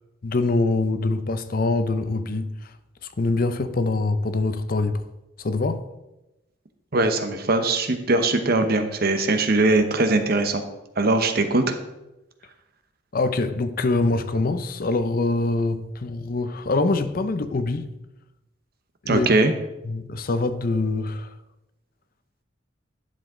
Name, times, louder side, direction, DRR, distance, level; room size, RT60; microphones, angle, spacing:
voice 1, 0.2-5.0 5.4-5.9 13.1-17.9 19.0-19.3 19.8-21.4, left 2 dB, 50° left, 0.6 m, -24 dB
voice 2, 6.9-10.6 11.0-11.8 19.1-19.5, right 2 dB, 55° right, 0.9 m, -21 dB
11.0 x 7.2 x 3.7 m
head